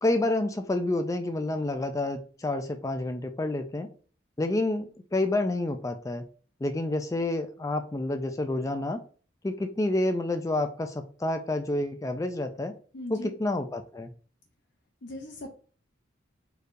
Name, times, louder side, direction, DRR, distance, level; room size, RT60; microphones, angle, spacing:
voice 1, 0.0-3.9 4.4-6.2 6.6-9.0 9.4-12.7 13.1-14.1, left 2 dB, 15° left, 7 dB, 0.3 m, -29 dB
voice 2, 12.9-13.3 15.0-15.5, left 1 dB, 60° left, 2 dB, 0.6 m, -39 dB
4.3 x 3.2 x 2.6 m, 0.40 s
head